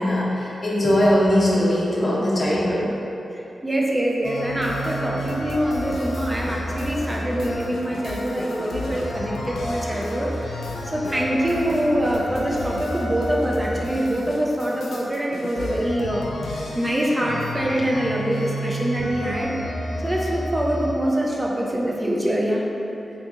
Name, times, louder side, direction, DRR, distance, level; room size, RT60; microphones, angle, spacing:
voice 1, 0.0-2.9, equal, 25° left, -7 dB, 0.6 m, -20 dB
voice 2, 3.3-19.5 20.0-22.6, equal, 15° right, -3 dB, 0.3 m, -24 dB
sound 1, 4.2-21.1, equal, 85° left, 0.3 m, -31 dB
2.8 x 2.5 x 3.5 m, 2.8 s
wide cardioid pair, 175°, 0 cm